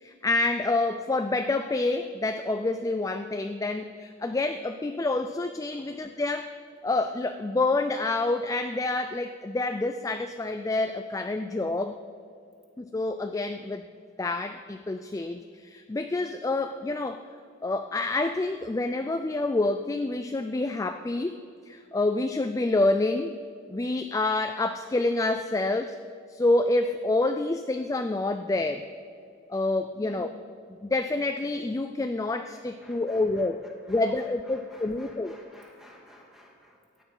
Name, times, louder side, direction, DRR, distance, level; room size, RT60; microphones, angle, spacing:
voice 1, 0.0-6.5 6.8-12.0 12.8-13.9 14.2-17.2 17.6-21.4 21.7-23.3 23.7-26.0 26.3-28.8 29.5-30.3 30.8-33.6 33.9-35.4, left 2 dB, 15° left, 8 dB, 0.3 m, -27 dB
voice 2, 30.0-30.3 32.8-33.5 33.9-37.0, equal, ahead, -2 dB, 2.1 m, -52 dB
15.0 x 9.4 x 5.4 m, 2.4 s
head